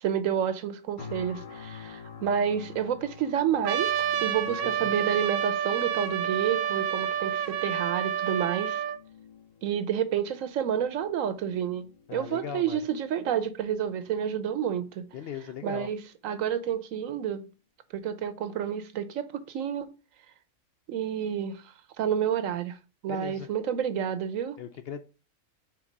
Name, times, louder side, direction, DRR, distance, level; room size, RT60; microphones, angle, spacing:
voice 1, 0.0-8.8 9.6-15.1 15.6-17.4 17.9-19.9 20.9-21.6 22.0-22.8 23.0-24.6, right 8 dB, 80° right, 1.1 m, -29 dB
sound 1, 1.0-16.0 16.5-16.7, left 6 dB, 85° left, 1.4 m, -49 dB
Trumpet, 3.6-9.0, right 9 dB, 60° right, 0.7 m, -29 dB
voice 2, 4.5-4.9 12.1-12.8 15.1-15.9 23.1-23.5 24.6-25.0, left 8 dB, 60° left, 0.7 m, -39 dB
4.5 x 4.3 x 5.3 m
omnidirectional pair, 1.3 m